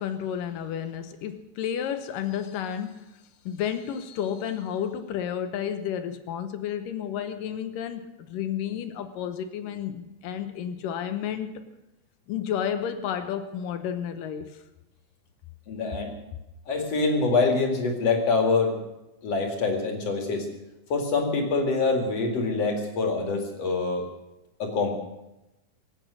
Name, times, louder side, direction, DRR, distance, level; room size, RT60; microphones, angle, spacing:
voice 1, 0.0-3.0 3.5-11.6 12.3-14.6, left 9 dB, 75° left, 2.5 m, -31 dB
voice 2, 15.7-16.1 16.7-18.8 19.2-20.5 20.9-24.1 24.6-24.9, left 3 dB, 50° left, 3.1 m, -25 dB
25.0 x 8.5 x 6.3 m
omnidirectional pair, 4.0 m